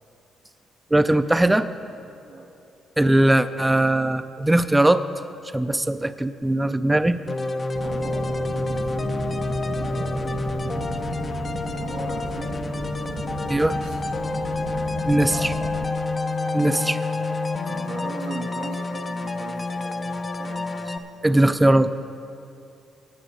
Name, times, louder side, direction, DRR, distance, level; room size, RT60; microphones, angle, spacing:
voice 1, 0.9-1.7 3.0-5.0 5.5-7.2 13.5-13.7 15.1-15.3 16.5-17.0 21.2-21.9, right 1 dB, 10° right, 12 dB, 0.4 m, -19 dB
sound 1, 7.3-21.0, left 3 dB, 30° left, 0.6 m, -28 dB
sound 2, 7.7-15.9, right 4 dB, 60° right, 1.1 m, -34 dB
voice 2, 7.8-10.5 11.8-12.7 13.0-14.1 15.3-15.6 16.8-17.1 17.7-20.7, right 3 dB, 90° right, -1 dB, 2.5 m, -39 dB
17.5 x 9.0 x 3.9 m, 2.6 s
cardioid pair, 90°, 0 cm